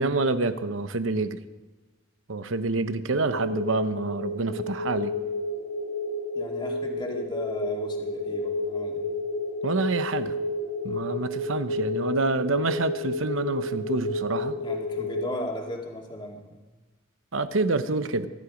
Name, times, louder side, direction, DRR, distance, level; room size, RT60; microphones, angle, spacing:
voice 1, 0.0-1.4 2.3-5.1 9.6-10.3 10.8-14.6 17.3-18.3, right 3 dB, 85° right, 11 dB, 0.9 m, -27 dB
sound 1, 3.2-15.2, left 2 dB, 85° left, 3.4 m, -31 dB
voice 2, 6.3-9.1 14.6-16.6, left 1 dB, 25° left, 0 dB, 2.2 m, -36 dB
22.5 x 11.5 x 5.2 m, 1.3 s
head